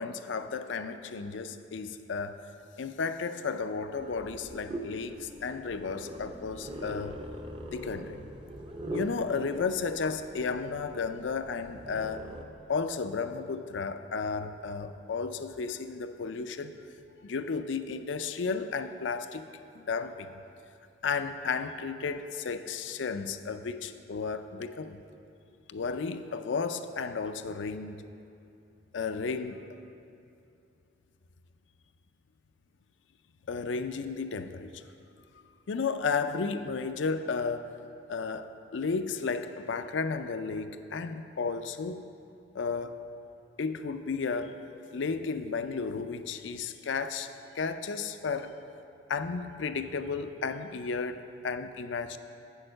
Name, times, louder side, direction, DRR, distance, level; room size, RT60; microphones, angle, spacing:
voice 1, 0.0-2.4 2.8-7.2 7.7-8.2 8.9-12.3 12.7-16.9 17.2-19.4 19.7-20.4 21.0-25.0 25.7-28.0 28.9-29.8 33.5-34.8 35.7-37.7 38.1-42.0 42.5-43.0 43.6-44.6 44.9-48.5 49.1-52.2, left 5 dB, 75° left, 10 dB, 0.5 m, -33 dB
sound 1, 3.9-12.4, right 1 dB, 30° right, 0.6 m, -42 dB
8.8 x 6.5 x 6.4 m, 2.7 s
head